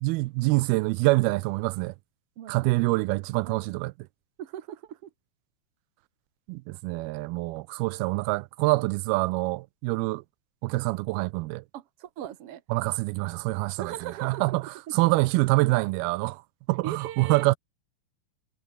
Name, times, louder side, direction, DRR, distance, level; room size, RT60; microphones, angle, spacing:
voice 1, 0.0-1.9 2.5-3.9 6.5-10.2 10.6-11.6 12.7-16.4 16.7-17.6, right 22 dB, 85° right, 2.4 m, -26 dB
voice 2, 2.4-3.0 3.4-3.8 4.4-5.1 11.7-12.6 13.8-14.6 14.9-15.0 16.8-17.5, right 11 dB, 70° right, 1.4 m, -39 dB
omnidirectional pair, 4.4 m